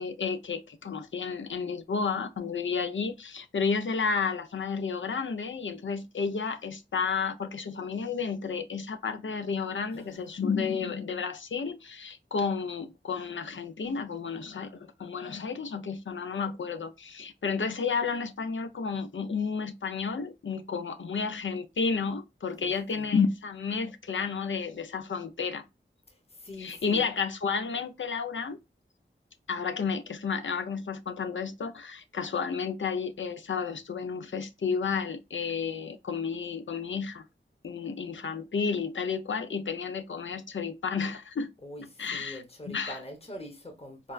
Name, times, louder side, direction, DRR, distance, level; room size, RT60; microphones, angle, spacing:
voice 1, 0.0-25.6 26.6-28.6 29.5-37.2 37.6-41.5 42.0-43.0, left 5 dB, 70° left, 0.4 m, -31 dB
voice 2, 9.9-10.5 22.6-23.1 26.4-27.1 41.6-44.1, left 1 dB, 30° left, 0.9 m, -44 dB
4.2 x 2.1 x 2.3 m
wide cardioid pair, 40°, 20 cm